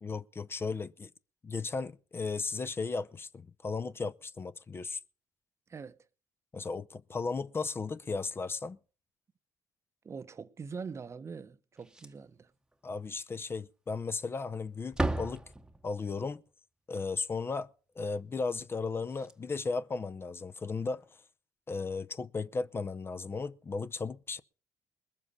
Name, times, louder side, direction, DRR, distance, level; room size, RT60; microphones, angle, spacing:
voice 1, 0.0-1.1 1.4-5.0 6.5-8.8 12.8-15.4 15.8-16.4 16.9-17.7 18.0-21.0 21.7-24.4, left 4 dB, 30° left, 0.6 m, -35 dB
voice 2, 10.0-12.5, right 5 dB, 35° right, 0.8 m, -43 dB
Slam, 11.8-12.4 12.7-12.8 13.3-13.4 14.2-14.5 14.8-16.1 18.8-18.9 19.1-19.3 20.8-21.0, right 2 dB, 10° right, 1.0 m, -36 dB
20.0 x 7.3 x 5.6 m
supercardioid pair, 80°, 8 cm